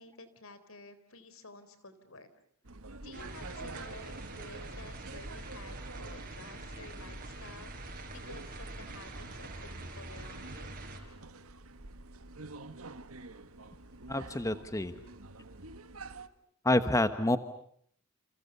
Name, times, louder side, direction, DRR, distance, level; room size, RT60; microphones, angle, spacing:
voice 1, 0.0-2.3 3.0-10.7, left 2 dB, 70° left, 12 dB, 3.9 m, -52 dB
sound 1, 2.6-16.3, right 3 dB, 80° right, 1.6 m, -48 dB
sound 2, 3.1-11.0, right 2 dB, 40° right, 5.3 m, -44 dB
voice 2, 14.1-14.9 16.6-17.4, left 1 dB, 15° left, 10 dB, 1.1 m, -27 dB
30.0 x 29.5 x 6.8 m, 0.63 s
head